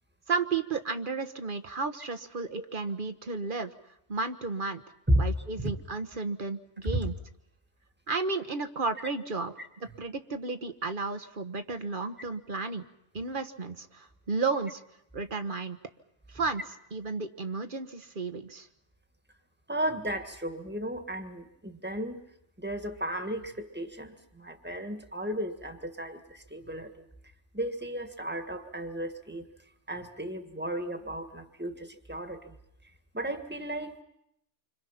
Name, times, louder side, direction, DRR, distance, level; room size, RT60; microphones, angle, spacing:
voice 1, 0.3-3.7 4.1-4.8 5.2-7.1 8.1-12.8 13.1-14.8 15.1-15.8 16.3-16.6 16.9-18.7, right 4 dB, 45° right, 9 dB, 1.3 m, -33 dB
voice 2, 19.7-22.2 22.6-27.1 27.5-29.4 29.9-32.6 33.1-34.0, right 1 dB, 10° right, 7 dB, 1.8 m, -34 dB
27.5 x 25.5 x 5.8 m, 0.78 s
omnidirectional pair, 1.2 m